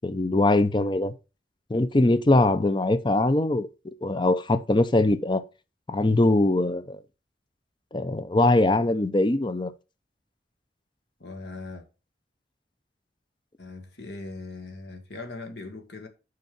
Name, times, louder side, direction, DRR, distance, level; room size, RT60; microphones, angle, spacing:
voice 1, 0.0-1.1 1.7-5.4 5.9-7.0 7.9-9.7, left 2 dB, 25° left, 0.6 m, -22 dB
voice 2, 11.2-11.9 13.6-16.1, left 3 dB, 70° left, 1.7 m, -40 dB
6.7 x 5.6 x 5.3 m
head